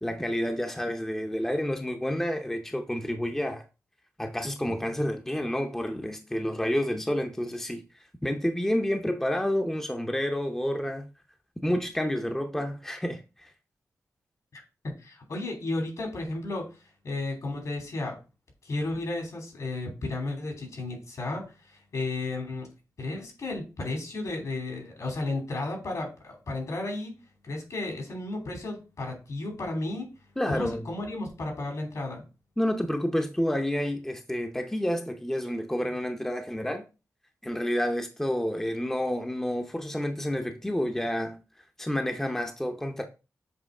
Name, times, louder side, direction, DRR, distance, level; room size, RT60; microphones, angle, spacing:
voice 1, 0.0-3.6 4.2-11.1 11.6-13.5 30.4-30.9 32.6-36.8 37.4-41.4 41.8-43.0, equal, 5° left, 0.7 m, -29 dB
voice 2, 14.5-16.7 17.0-18.2 18.6-22.7 23.0-27.1 27.4-30.1 30.5-32.2, left 2 dB, 70° left, 2.8 m, -33 dB
7.5 x 3.0 x 4.8 m
wide cardioid pair, 110°, 6 cm